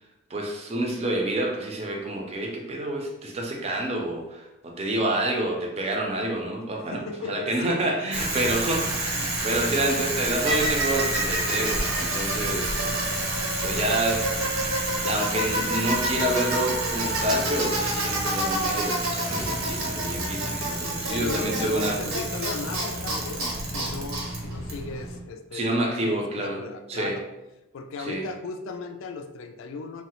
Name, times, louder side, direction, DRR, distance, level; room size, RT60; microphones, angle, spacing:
voice 1, 0.3-13.2 13.6-14.2 14.9-22.0 25.5-26.6 26.9-27.2 28.0-28.2, right 1 dB, 30° right, 0 dB, 0.4 m, -28 dB
voice 2, 6.8-7.5 8.0-8.5 9.5-9.7 20.9-27.3 27.7-30.0, left 4 dB, 70° left, 6 dB, 0.3 m, -37 dB
Bicycle, 8.1-25.2, right 1 dB, 80° right, 0.7 m, -28 dB
sound 1, 19.2-21.4, left 1 dB, 15° left, 0.6 m, -41 dB
3.1 x 2.0 x 2.9 m, 1.0 s
head